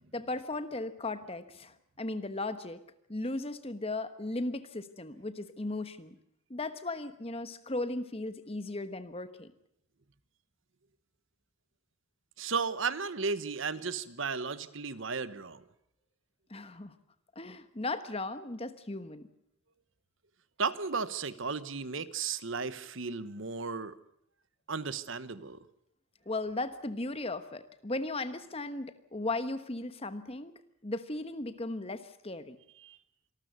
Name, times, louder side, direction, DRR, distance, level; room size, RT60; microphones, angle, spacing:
voice 1, 0.1-2.8 3.1-6.2 6.5-9.5 16.5-16.9 17.3-19.3 26.3-32.6, left 2 dB, 25° left, 11 dB, 1.2 m, -36 dB
voice 2, 12.4-15.6 20.6-23.9 24.7-25.6 32.8-33.0, right 5 dB, 60° right, 15 dB, 1.1 m, -34 dB
26.0 x 13.0 x 9.3 m, 0.76 s
head